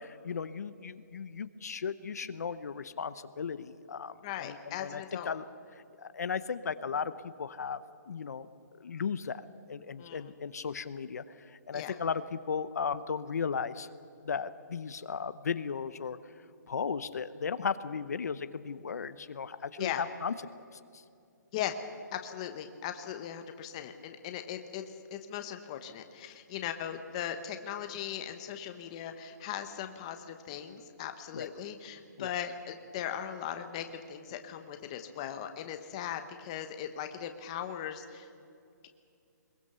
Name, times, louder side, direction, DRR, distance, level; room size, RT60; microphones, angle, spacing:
voice 1, 0.0-5.4 6.0-7.8 8.1-8.5 8.8-9.4 9.7-13.9 14.2-16.2 16.7-20.3 20.7-21.0 31.3-31.5 32.2-32.3, left 6 dB, 60° left, 14 dB, 0.8 m, -36 dB
voice 2, 4.2-5.3 10.0-10.3 11.7-12.0 19.8-20.0 21.5-21.8 22.1-38.3, left 10 dB, 20° left, 7 dB, 0.9 m, -39 dB
22.0 x 21.5 x 6.8 m, 2.5 s
hypercardioid pair, 175°, 10 cm